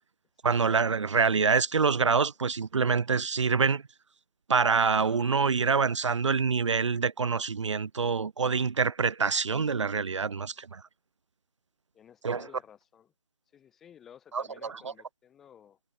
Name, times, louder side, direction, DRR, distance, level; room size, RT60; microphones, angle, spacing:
voice 1, 0.4-3.8 4.5-10.8 12.2-12.4 14.3-14.9, right 5 dB, 70° right, 0.5 m, -26 dB
voice 2, 11.9-13.1 13.5-15.8, left 9 dB, ahead, 0.4 m, -54 dB
figure-of-eight pair, 160°, 16 cm